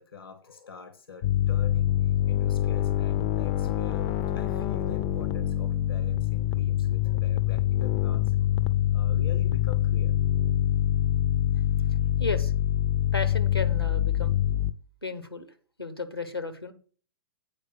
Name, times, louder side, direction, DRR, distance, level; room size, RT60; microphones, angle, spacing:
voice 1, 0.0-4.1 4.3-8.4 8.9-10.2, left 5 dB, 75° left, 10 dB, 1.0 m, -44 dB
sound 1, 1.2-14.7, left 12 dB, 35° left, 0.5 m, -25 dB
voice 2, 12.2-12.5 13.1-14.3 15.0-15.5 15.8-16.7, left 3 dB, 90° left, 9 dB, 1.2 m, -33 dB
8.4 x 4.9 x 6.2 m, 0.41 s
figure-of-eight pair, 110°, 12 cm